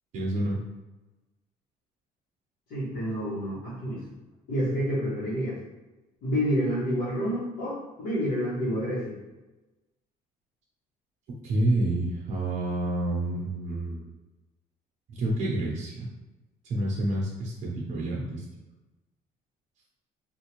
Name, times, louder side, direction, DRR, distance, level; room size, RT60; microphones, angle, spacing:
voice 1, 0.1-0.6 11.4-14.0 15.1-16.1 16.6-18.4, right 1 dB, 50° right, -3 dB, 0.7 m, -28 dB
voice 2, 2.7-4.0 4.5-5.6 6.2-9.1, equal, 80° left, -12 dB, 1.4 m, -28 dB
3.7 x 2.5 x 3.0 m, 1.1 s
cardioid pair, 155°, 16 cm